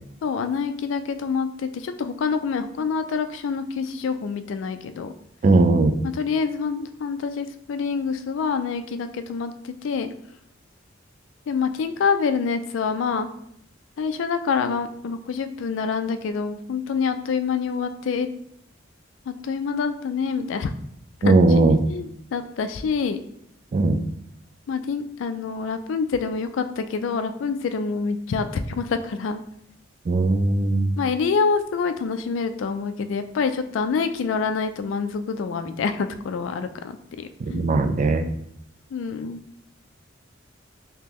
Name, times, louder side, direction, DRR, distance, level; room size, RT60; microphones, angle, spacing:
voice 1, 0.2-5.1 6.0-10.1 11.5-13.3 14.0-18.3 19.3-20.7 21.3-23.2 24.7-29.4 31.0-37.8 38.9-39.4, left 5 dB, 75° left, 9 dB, 0.3 m, -26 dB
voice 2, 5.4-5.9 21.2-21.8 23.7-24.0 30.1-30.9 37.4-38.2, right 2 dB, 40° right, 7 dB, 0.3 m, -18 dB
3.7 x 2.8 x 2.9 m, 0.74 s
head